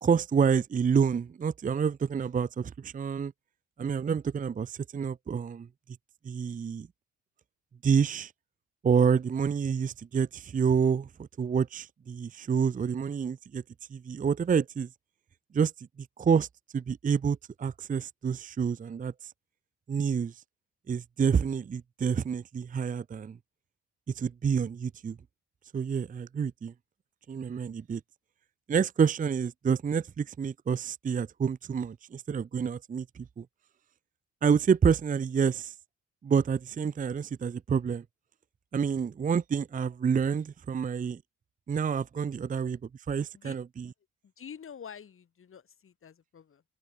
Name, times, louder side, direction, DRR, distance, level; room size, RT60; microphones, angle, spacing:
voice 1, 0.0-3.3 3.8-5.7 6.2-6.9 7.8-8.3 8.8-13.6 13.9-14.9 15.5-15.9 16.2-16.5 16.7-19.3 19.9-20.4 20.9-23.4 24.1-25.2 25.7-26.7 27.3-28.0 28.7-33.5 34.4-35.7 36.2-38.0 38.7-41.2 41.7-42.8 43.1-43.9, right 6 dB, 25° right, 0.6 m, -28 dB
voice 2, 44.2-46.6, left 7 dB, 45° left, 2.4 m, -47 dB
open air
cardioid pair, 90°, 30 cm